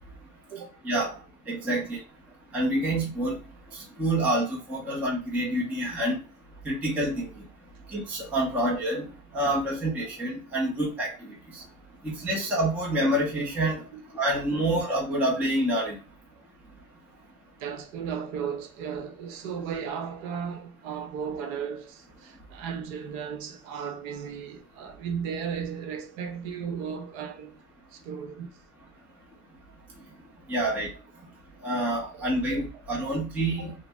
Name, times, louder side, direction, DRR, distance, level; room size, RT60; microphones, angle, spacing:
voice 1, 0.5-1.2 4.9-5.0 8.5-8.6 12.2-12.3 13.9-14.0 16.3-16.4 17.6-27.6 27.9-28.6 32.1-32.6 33.6-33.7, right 7 dB, 55° right, 0.8 m, -36 dB
voice 2, 1.5-2.0 2.5-3.4 4.0-6.2 6.6-7.3 7.9-9.1 9.3-11.1 11.5-11.6 12.0-13.8 14.1-16.0 30.5-30.9 31.6-33.7, right 1 dB, 5° right, 0.5 m, -27 dB
2.6 x 2.0 x 3.3 m
supercardioid pair, 130°, 47 cm